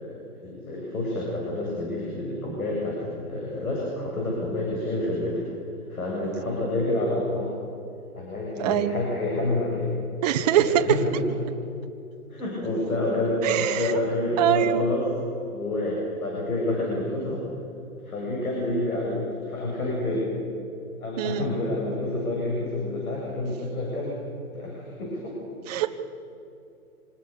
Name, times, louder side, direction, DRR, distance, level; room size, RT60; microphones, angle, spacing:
voice 1, 0.0-5.4 5.9-7.5 8.1-9.9 10.4-11.4 12.3-15.1 15.5-17.4 18.0-20.3 21.0-24.2 24.5-25.4 25.8-25.9, left 2 dB, 75° left, -3 dB, 7.8 m, -28 dB
voice 2, 8.6-9.0 10.2-11.0 13.4-13.9 14.4-14.8 21.2-21.5 25.7-26.0, right 11 dB, 25° right, 6 dB, 1.0 m, -23 dB
26.0 x 19.5 x 7.0 m, 2.8 s
hypercardioid pair, 155°, 44 cm